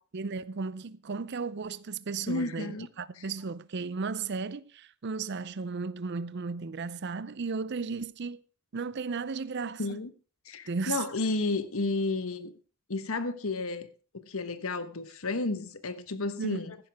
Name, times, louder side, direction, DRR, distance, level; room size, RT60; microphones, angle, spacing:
voice 1, 0.1-8.4 8.7-10.0 10.7-11.0 16.4-16.6, right 4 dB, 50° right, 0.5 m, -35 dB
voice 2, 2.3-2.9 3.2-3.3 9.8-10.1 10.4-12.5 12.9-13.9 14.1-16.8, left 3 dB, 70° left, 1.2 m, -32 dB
15.5 x 11.0 x 3.5 m
head